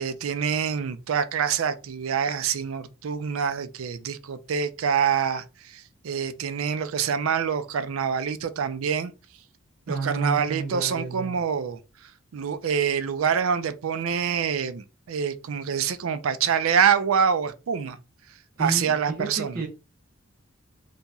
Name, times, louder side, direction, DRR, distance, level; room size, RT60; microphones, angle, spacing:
voice 1, 0.0-9.1 9.9-11.8 12.3-18.0 18.6-19.6, right 7 dB, 85° right, 0.4 m, -26 dB
voice 2, 9.9-11.4 18.6-19.7, right 3 dB, 45° right, 0.8 m, -31 dB
2.9 x 2.7 x 3.5 m
head